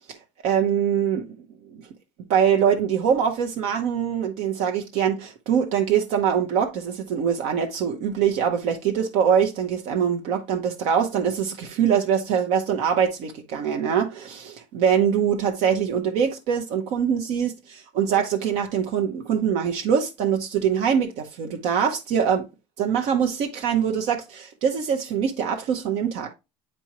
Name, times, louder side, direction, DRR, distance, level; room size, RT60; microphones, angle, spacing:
voice 1, 0.4-1.3 1.7-1.9 2.3-22.4 22.8-26.3, right 8 dB, 65° right, 1.0 m, -23 dB
8.4 x 4.5 x 3.0 m
cardioid pair, 160°, 12 cm